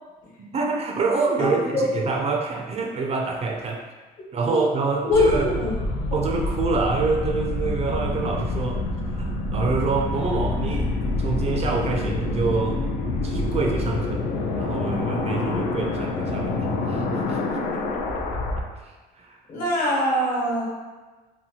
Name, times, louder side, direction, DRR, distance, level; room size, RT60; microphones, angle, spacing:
voice 1, 0.4-3.9 4.3-5.5 6.1-12.9 13.2-17.6 18.8-19.4, right 4 dB, 40° right, 1 dB, 0.4 m, -27 dB
voice 2, 1.4-1.8 4.5-4.6 5.0-5.3 5.5-5.7 19.5-20.6, left 1 dB, 50° left, -5 dB, 1.1 m, -22 dB
sound 1, 5.1-18.6, left 2 dB, 90° left, 0.4 m, -27 dB
2.8 x 2.2 x 2.8 m, 1.3 s
cardioid pair, 110°, 17 cm